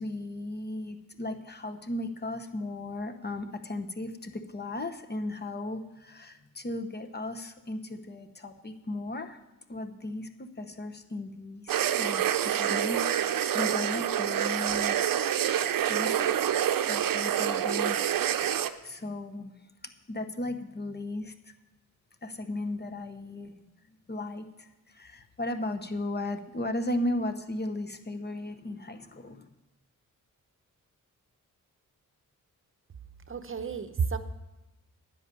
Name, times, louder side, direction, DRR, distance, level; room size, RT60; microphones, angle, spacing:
voice 1, 0.0-9.4 9.7-15.0 15.9-19.5 20.1-21.3 22.2-23.5 24.1-29.5, left 1 dB, 30° left, 8 dB, 0.9 m, -36 dB
sound 1, 11.7-18.7, right 10 dB, 85° right, 0.6 m, -27 dB
voice 2, 33.3-34.2, right 6 dB, 40° right, 9 dB, 0.8 m, -31 dB
10.5 x 9.6 x 6.8 m, 0.99 s
wide cardioid pair, 100°, 33 cm